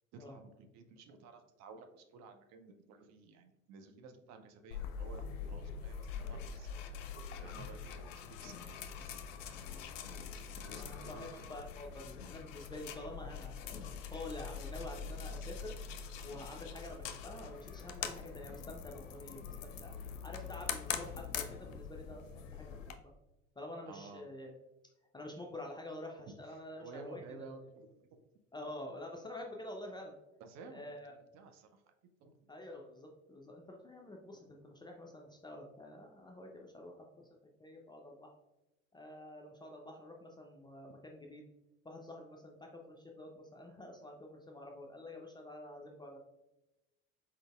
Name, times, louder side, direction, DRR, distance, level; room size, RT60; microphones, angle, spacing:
voice 1, 0.1-6.9 7.4-9.2 9.5-9.7 10.6-11.3 23.9-24.3 26.5-28.2 30.4-31.8 32.2-32.3, right 4 dB, 45° right, 6 dB, 0.5 m, -54 dB
sound 1, 4.7-22.9, left 7 dB, 65° left, 0.5 m, -44 dB
voice 2, 10.7-15.8 16.2-19.9 20.2-23.1 23.6-24.6 25.1-27.2 28.5-30.1 30.7-31.1 32.5-37.3 37.6-38.3 38.9-41.5 41.8-46.2, left 1 dB, 10° left, 0 dB, 0.4 m, -48 dB
4.2 x 3.8 x 2.3 m, 0.98 s
figure-of-eight pair, 60°, 40 cm